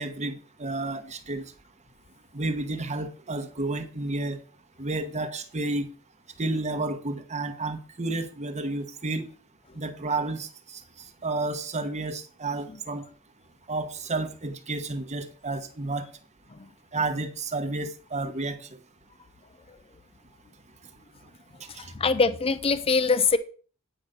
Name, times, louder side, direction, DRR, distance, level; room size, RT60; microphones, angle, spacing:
voice 1, 0.0-1.5 2.3-4.4 4.8-5.9 6.4-9.3 9.7-10.8 11.2-13.0 13.7-16.1 16.9-18.7 21.8-21.9, right 2 dB, 30° right, 8 dB, 1.1 m, -31 dB
voice 2, 21.7-23.4, left 4 dB, 25° left, 13 dB, 0.5 m, -24 dB
9.0 x 5.6 x 5.1 m, 0.39 s
head